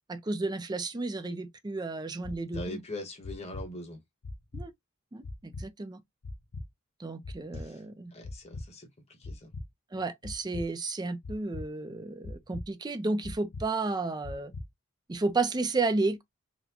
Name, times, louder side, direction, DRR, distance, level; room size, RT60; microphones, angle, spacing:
voice 1, 0.1-2.8 4.5-4.7 5.1-6.0 7.0-8.1 9.9-14.5 15.1-16.2, right 3 dB, 20° right, 0.5 m, -32 dB
sound 1, 2.2-2.6 3.2-3.7 4.2-4.7 5.2-5.7 6.2-6.7 7.2-7.7 8.2-8.7 9.2-9.7 10.2-10.6 11.2-11.7 12.2-12.7 13.2-13.7 14.2-14.7, left 2 dB, 90° left, 0.6 m, -39 dB
voice 2, 2.5-4.0 7.5-7.8 8.1-9.5, left 1 dB, 30° left, 1.1 m, -42 dB
4.0 x 2.1 x 2.8 m
head